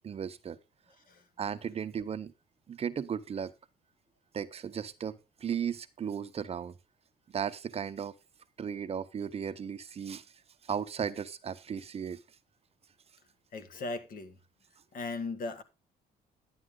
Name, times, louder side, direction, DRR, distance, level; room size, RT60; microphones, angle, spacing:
voice 1, 0.0-0.6 1.4-2.3 2.7-3.5 4.3-6.7 7.3-8.1 8.6-10.2 10.6-12.2, right 7 dB, 35° right, 0.8 m, -35 dB
voice 2, 13.5-14.4 14.9-15.6, left 3 dB, 55° left, 2.0 m, -37 dB
11.0 x 9.7 x 3.7 m
cardioid pair, 110°, 17 cm